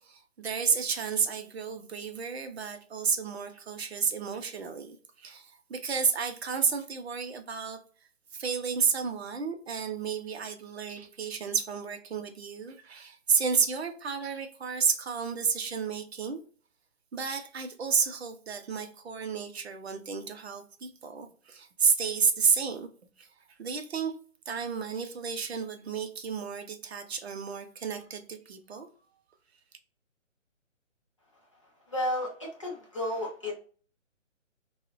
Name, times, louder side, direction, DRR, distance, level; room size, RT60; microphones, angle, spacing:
voice 1, 0.0-7.8 8.3-16.4 17.1-22.9 23.2-23.3 23.6-24.1 24.5-28.9, right 6 dB, 55° right, 0.5 m, -31 dB
voice 2, 31.9-33.5, left 1 dB, 25° left, 0.5 m, -32 dB
2.7 x 2.1 x 2.5 m
hypercardioid pair, 165°, 39 cm